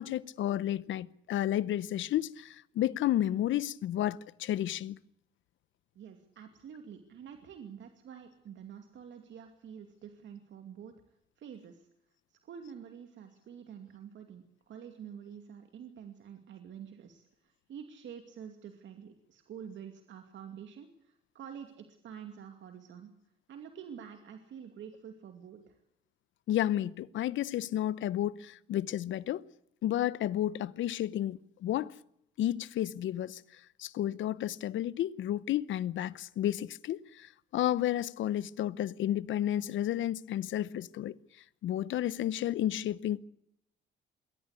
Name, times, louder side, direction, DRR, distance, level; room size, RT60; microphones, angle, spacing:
voice 1, 0.0-5.0 26.5-29.4 29.8-31.9 32.4-41.2 41.6-43.2, left 12 dB, 75° left, 0.9 m, -32 dB
voice 2, 5.9-10.9 11.4-11.9 12.3-23.1 23.5-25.8, right 8 dB, 70° right, 2.5 m, -48 dB
22.5 x 17.0 x 8.3 m
cardioid pair, 90°, 20 cm